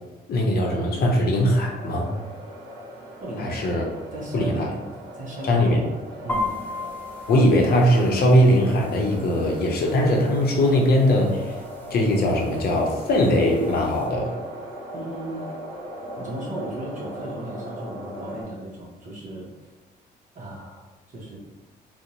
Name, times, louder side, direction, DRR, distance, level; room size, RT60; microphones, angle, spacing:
voice 1, 0.3-2.1 3.4-3.8 4.3-4.7 5.5-5.8 7.3-11.5 11.9-14.3, left 1 dB, 60° left, 0 dB, 0.6 m, -20 dB
sound 1, 1.5-18.4, equal, 85° right, 0.7 m, -39 dB
voice 2, 3.2-3.6 4.1-4.8 5.1-5.8 6.2-6.6 14.9-15.5 16.2-19.7 20.3-21.4, right 1 dB, 45° right, -4 dB, 0.7 m, -35 dB
sound 2, 6.3-14.1, left 2 dB, 10° left, 0.5 m, -37 dB
2.5 x 2.0 x 2.8 m, 1.2 s
cardioid pair, 100°, 18 cm